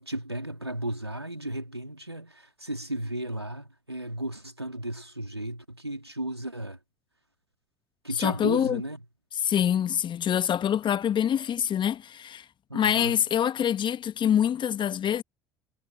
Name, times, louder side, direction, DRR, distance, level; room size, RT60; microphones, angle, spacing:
voice 1, 0.0-6.8 8.0-9.0 12.7-13.3, right 1 dB, 90° right, 3.0 m, -35 dB
voice 2, 8.2-8.8 9.4-12.4 12.7-15.2, left 9 dB, 40° left, 1.5 m, -25 dB
figure-of-eight pair, 60°, 13 cm